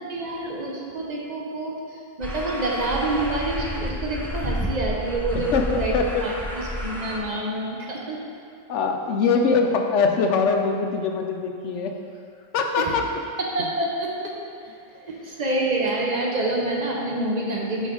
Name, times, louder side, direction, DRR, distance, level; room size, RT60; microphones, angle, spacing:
voice 1, 0.0-8.2 12.8-12.9 13.4-14.1 15.1-17.9, right 2 dB, 35° right, -2 dB, 1.0 m, -27 dB
sound 1, 2.2-7.2, equal, 5° left, 0.3 m, -30 dB
voice 2, 5.5-6.2 8.7-12.0 12.5-13.1, left 4 dB, 65° left, 4 dB, 0.9 m, -22 dB
10.0 x 4.2 x 3.8 m, 2.6 s
omnidirectional pair, 1.4 m